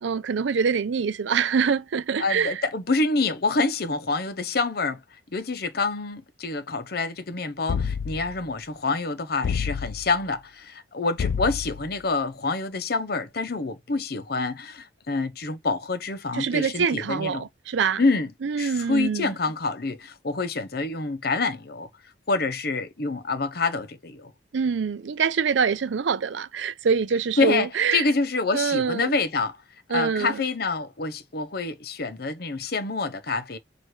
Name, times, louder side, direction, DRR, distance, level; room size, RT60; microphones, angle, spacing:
voice 1, 0.0-2.6 16.3-18.0 18.4-19.3 24.5-28.0 28.5-29.2 29.9-30.4, right 6 dB, 75° right, 0.5 m, -25 dB
voice 2, 2.2-5.0 5.3-17.5 18.0-18.3 18.6-21.9 22.3-24.3 27.4-29.6 29.9-33.6, left 3 dB, 55° left, 0.8 m, -27 dB
sound 1, 7.7-8.4 9.4-10.2 11.2-11.9, left 6 dB, 80° left, 0.4 m, -29 dB
6.3 x 2.6 x 3.1 m
head